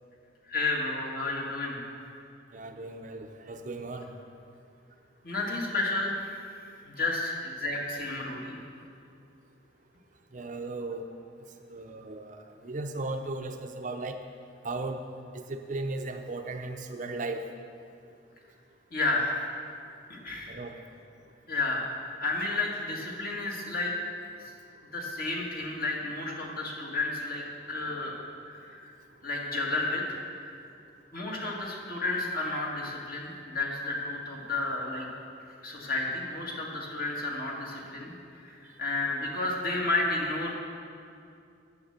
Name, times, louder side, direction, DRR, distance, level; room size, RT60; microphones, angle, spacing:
voice 1, 0.4-1.8 5.2-6.4 6.8-8.6 18.9-19.4 20.1-20.6 21.5-21.9 22.2-23.9 24.4-24.5 24.9-28.1 28.4-28.8 29.2-30.5 31.1-35.1 35.6-40.5, left 2 dB, 50° left, -2 dB, 2.0 m, -32 dB
voice 2, 2.5-4.1 10.3-11.1 11.7-14.2 14.6-15.0 15.3-17.4 20.5-20.8, right 2 dB, 40° right, 5 dB, 0.6 m, -36 dB
10.5 x 8.0 x 6.7 m, 2.4 s
head